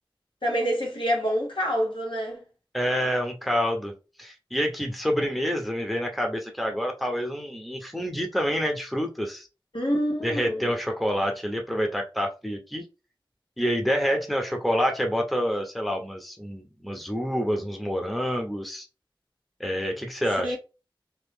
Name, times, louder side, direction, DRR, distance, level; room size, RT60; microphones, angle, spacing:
voice 1, 0.4-2.4 9.7-10.7 20.4-20.6, equal, 70° left, 1.2 m, -27 dB
voice 2, 2.7-3.9 4.2-9.5 10.2-12.9 13.6-18.9 19.6-20.6, equal, ahead, 0.7 m, -27 dB
2.9 x 2.4 x 3.4 m
wide cardioid pair, 40°, 9 cm